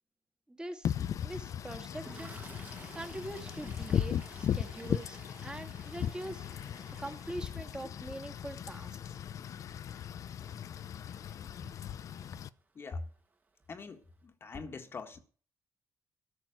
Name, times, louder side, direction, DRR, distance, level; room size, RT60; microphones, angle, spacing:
voice 1, 0.5-2.4 2.9-6.5 7.0-9.0, right 1 dB, 15° right, 1.7 m, -43 dB
Wind / Rain, 0.8-12.5, left 9 dB, 60° left, 0.5 m, -37 dB
Toilet flush, 1.9-12.2 13.2-13.3 13.6-13.8, right 3 dB, 30° right, 1.5 m, -55 dB
voice 2, 12.7-13.1 13.7-15.2, left 4 dB, 40° left, 1.6 m, -42 dB
13.5 x 6.1 x 9.1 m
cardioid pair, 125°, 6 cm